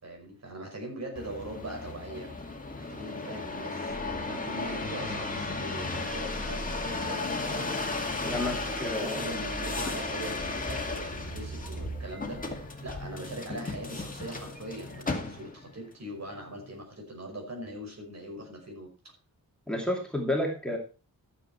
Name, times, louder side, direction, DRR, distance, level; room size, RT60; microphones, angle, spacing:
voice 1, 0.0-2.4 2.7-7.9 8.8-18.9, right 1 dB, 50° right, 1 dB, 5.6 m, -41 dB
sound 1, 1.2-15.7 16.3-16.8, left 3 dB, 25° left, 2.1 m, -35 dB
sound 2, 3.9-12.7, right 2 dB, 85° right, 4.0 m, -44 dB
voice 2, 8.2-9.3 19.7-20.8, left 1 dB, ahead, 0 dB, 2.6 m, -30 dB
13.5 x 7.8 x 4.4 m, 0.32 s
wide cardioid pair, 135°, 35 cm